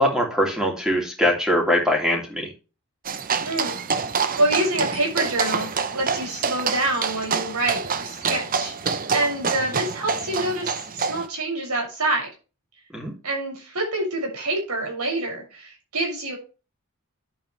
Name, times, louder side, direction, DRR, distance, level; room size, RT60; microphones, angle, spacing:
voice 1, 0.0-2.5 12.9-13.1, equal, 5° right, 0 dB, 3.0 m, -22 dB
sound 1, 3.0-11.3, right 5 dB, 40° right, 0.7 m, -27 dB
voice 2, 3.4-3.8 4.1-12.3 13.2-16.4, right 2 dB, 90° right, 0 dB, 6.7 m, -26 dB
10.5 x 8.4 x 3.3 m, 0.32 s
head